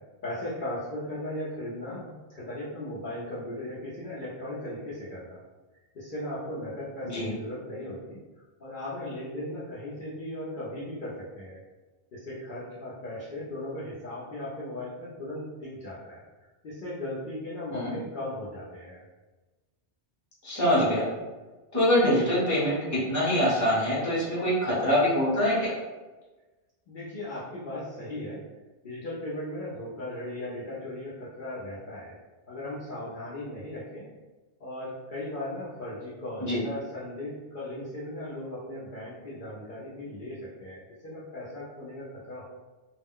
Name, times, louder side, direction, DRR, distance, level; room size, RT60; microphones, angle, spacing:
voice 1, 0.2-5.4 5.9-8.2 8.6-11.6 12.1-16.2 16.6-19.0 26.9-28.4 28.8-32.1 32.5-34.1 34.6-42.5, left 1 dB, 55° left, -8 dB, 0.8 m, -37 dB
voice 2, 20.4-21.0 21.7-25.7 36.4-36.6, equal, 20° left, -8 dB, 0.9 m, -24 dB
2.3 x 2.1 x 3.5 m, 1.2 s
omnidirectional pair, 1.0 m